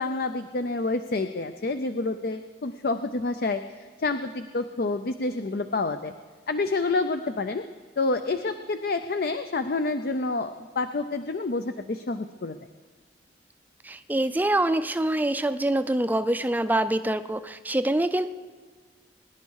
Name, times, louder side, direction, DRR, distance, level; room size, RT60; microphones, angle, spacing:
voice 1, 0.0-6.1 6.5-7.6 8.0-12.6, left 3 dB, 55° left, 9 dB, 0.5 m, -28 dB
voice 2, 13.8-18.3, right 1 dB, 10° right, 11 dB, 0.4 m, -25 dB
22.5 x 10.5 x 4.7 m, 1.4 s
head